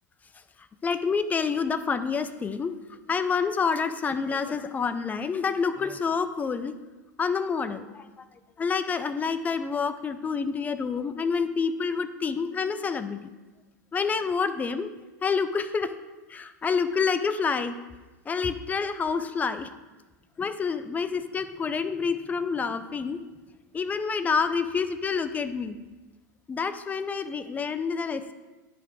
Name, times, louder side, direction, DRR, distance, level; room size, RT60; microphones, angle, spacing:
voice 1, 0.8-2.8 3.1-6.7 7.2-8.2 8.6-13.2 13.9-14.9 15.2-15.9 16.3-17.7 18.3-19.7 20.4-23.2 23.7-25.8 26.5-28.3, left 5 dB, 15° left, 11 dB, 0.5 m, -28 dB
10.0 x 4.6 x 4.6 m, 1.2 s
hypercardioid pair, 115°, 10 cm